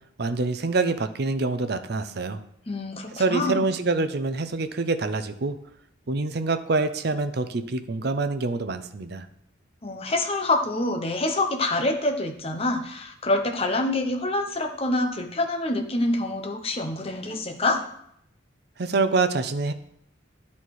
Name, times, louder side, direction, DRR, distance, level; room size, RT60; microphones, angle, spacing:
voice 1, 0.2-2.4 3.1-5.6 6.1-9.3 18.8-19.7, right 3 dB, 55° right, 10 dB, 0.6 m, -26 dB
voice 2, 2.7-3.6 9.8-17.8, left 2 dB, 30° left, 4 dB, 0.8 m, -26 dB
11.0 x 4.2 x 4.7 m, 0.73 s
head